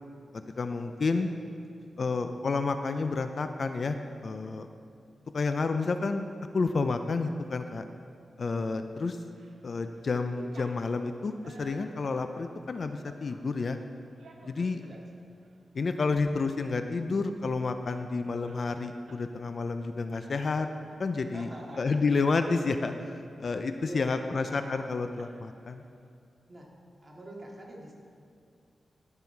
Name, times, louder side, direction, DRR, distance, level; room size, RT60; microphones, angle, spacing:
voice 1, 0.3-1.3 2.0-4.0 4.2-4.7 5.3-6.3 6.5-7.8 8.4-9.2 9.6-13.8 14.4-14.8 15.7-20.7 21.0-21.5 21.8-25.8, left 4 dB, 55° left, 8 dB, 0.4 m, -30 dB
voice 2, 1.0-2.1 14.4-15.0 21.3-21.9 23.8-24.4 26.5-26.7 27.0-27.9, right 1 dB, 30° right, -3 dB, 2.2 m, -46 dB
sound 1, 9.2-9.6 9.9-13.5 14.0-15.0 15.4-15.6 16.0-16.3 16.6-16.7 16.9-19.3 19.6-19.8 20.1-20.6 21.0-21.1 21.4-22.5 22.9-24.0 24.5-24.9 25.2-25.8, right 3 dB, 85° right, 1.0 m, -53 dB
15.5 x 5.5 x 4.5 m, 2.4 s
wide cardioid pair, 90°, 0 cm